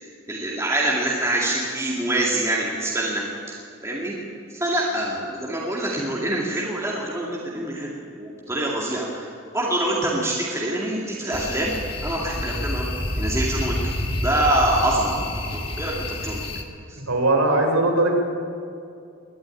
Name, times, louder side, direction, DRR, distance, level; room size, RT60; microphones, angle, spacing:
voice 1, 0.3-3.6 3.8-4.2 4.5-11.7 12.0-12.9 13.2-13.7 14.2-15.9 16.2-16.4, right 1 dB, 15° right, -4 dB, 2.3 m, -25 dB
sound 1, 11.3-16.6, left 1 dB, 25° left, 1.3 m, -28 dB
voice 2, 17.1-18.2, right 2 dB, 85° right, 3 dB, 3.7 m, -19 dB
21.5 x 12.5 x 9.7 m, 2.4 s
head